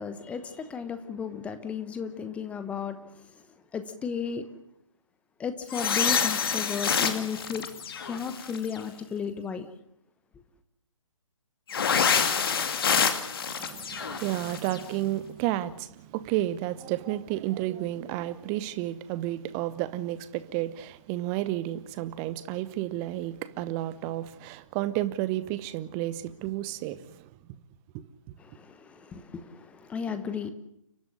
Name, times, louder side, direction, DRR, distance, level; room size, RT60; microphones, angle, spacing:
voice 1, 0.0-3.4 3.7-4.5 5.4-7.6 8.0-9.7 28.4-30.5, left 6 dB, 5° left, 1.0 m, -34 dB
sound 1, 5.7-8.8 11.7-14.8, left 6 dB, 45° left, 2.3 m, -27 dB
voice 2, 13.5-27.3 27.9-28.0, right 14 dB, 15° right, 1.0 m, -31 dB
30.0 x 12.0 x 9.9 m
figure-of-eight pair, 140°, 17 cm